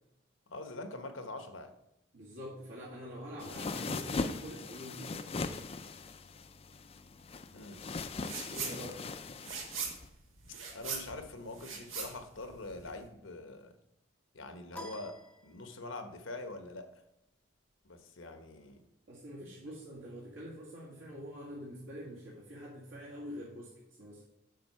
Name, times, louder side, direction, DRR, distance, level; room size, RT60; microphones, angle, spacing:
voice 1, 0.5-1.7 7.5-7.8 10.7-13.7 14.3-15.2 15.4-16.9 17.8-18.8, left 2 dB, 80° left, 7 dB, 1.1 m, -44 dB
voice 2, 2.1-5.3 8.5-9.0 19.1-23.7 24.0-24.2, equal, 75° right, -7 dB, 2.0 m, -45 dB
sound 1, 3.4-10.0, left 3 dB, 30° left, 0.4 m, -39 dB
sound 2, 8.2-8.8 9.1-13.0, right 5 dB, 90° right, 1.8 m, -40 dB
sound 3, 14.7-16.1, equal, 5° left, 0.8 m, -49 dB
7.7 x 4.9 x 5.5 m, 0.87 s
head